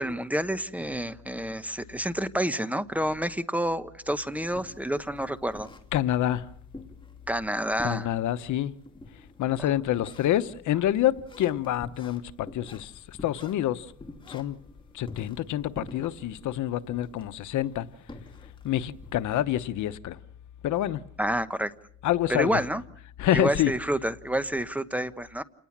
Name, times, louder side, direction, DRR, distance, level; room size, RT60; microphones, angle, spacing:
voice 1, 0.0-5.7 7.3-8.1 21.2-21.7 22.3-22.8 23.3-25.4, right 1 dB, 5° right, 1.0 m, -29 dB
sound 1, 4.3-19.4, left 2 dB, 15° left, 2.5 m, -48 dB
voice 2, 5.9-6.5 7.8-8.7 9.4-13.9 14.3-14.6 14.9-17.9 18.6-20.2 20.6-21.0 22.0-22.6 23.2-23.7, left 12 dB, 85° left, 1.0 m, -27 dB
29.0 x 19.5 x 7.3 m
cardioid pair, 120°, 29 cm